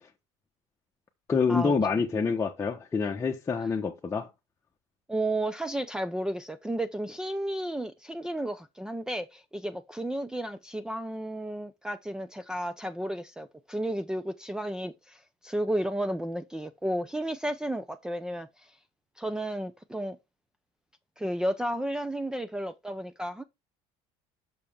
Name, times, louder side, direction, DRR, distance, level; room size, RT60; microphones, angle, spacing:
voice 1, 1.3-4.3, left 5 dB, 20° left, 1.2 m, -27 dB
voice 2, 5.1-18.7 19.2-20.2 21.2-23.4, right 1 dB, 5° right, 0.7 m, -32 dB
6.7 x 6.5 x 3.6 m
supercardioid pair, 105°, 14 cm